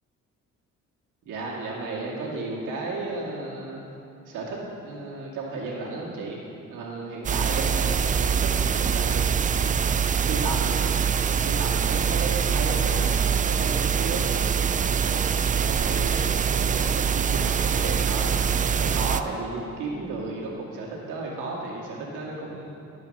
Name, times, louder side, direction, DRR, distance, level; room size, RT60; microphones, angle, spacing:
voice 1, 1.2-3.8 4.3-4.6 4.8-6.4 6.7-8.5 8.8-9.3 10.1-10.8 11.4-13.0 13.4-14.4 15.0-15.2 15.5-22.7, right 3 dB, 85° right, -3 dB, 2.3 m, -34 dB
sound 1, 7.2-19.2, right 7 dB, 25° right, 0.4 m, -24 dB
12.5 x 5.5 x 6.5 m, 2.8 s
cardioid pair, 90°, 30 cm